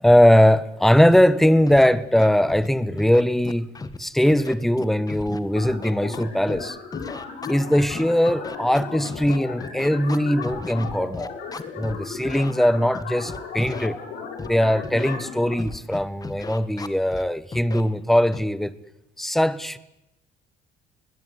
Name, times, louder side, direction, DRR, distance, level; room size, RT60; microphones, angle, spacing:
voice 1, 0.0-3.7 4.0-6.8 7.5-11.3 11.7-14.0 14.4-18.7 19.2-19.8, equal, ahead, 1.2 m, -20 dB
Scratching (performance technique), 1.1-1.2 1.7-1.9 2.2-2.7 3.0-4.0 4.3-6.6 6.9-12.0 12.2-12.5 12.9-13.9 14.4-14.5 14.8-15.2 15.6-17.2 17.5-17.8 18.3-18.5, left 3 dB, 20° left, 1.7 m, -35 dB
sound 1, 5.6-15.5, left 5 dB, 70° left, 7.3 m, -36 dB
21.0 x 21.0 x 9.8 m
cardioid pair, 110°, 17 cm